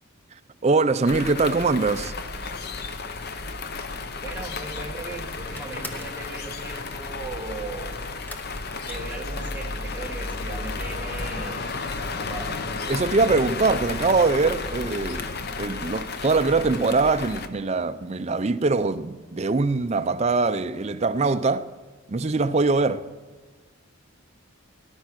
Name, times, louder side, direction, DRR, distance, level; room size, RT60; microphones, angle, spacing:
voice 1, 0.6-2.1 12.9-15.3 15.6-21.7 22.1-23.1, right 3 dB, 30° right, 0.5 m, -22 dB
sound 1, 1.0-17.5, left 3 dB, 45° left, 0.8 m, -33 dB
voice 2, 4.2-7.9 8.8-11.7 12.0-12.6, right 2 dB, 10° right, 1.5 m, -38 dB
sound 2, 5.5-6.2 8.3-9.8 10.0-10.7 11.0-11.1 11.4-11.5, left 1 dB, 10° left, 0.9 m, -43 dB
18.0 x 10.5 x 6.0 m
head